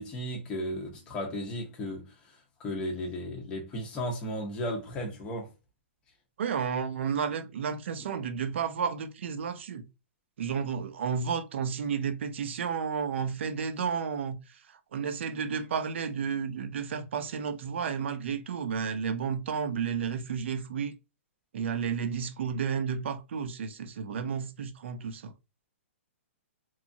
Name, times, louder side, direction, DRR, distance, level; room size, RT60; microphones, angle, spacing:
voice 1, 0.0-2.0 2.6-5.5, equal, 15° left, 0.6 m, -34 dB
voice 2, 6.4-9.9 10.4-20.9 21.5-25.3, right 6 dB, 60° right, 0.5 m, -32 dB
2.9 x 2.3 x 2.5 m
hypercardioid pair, 165°, 7 cm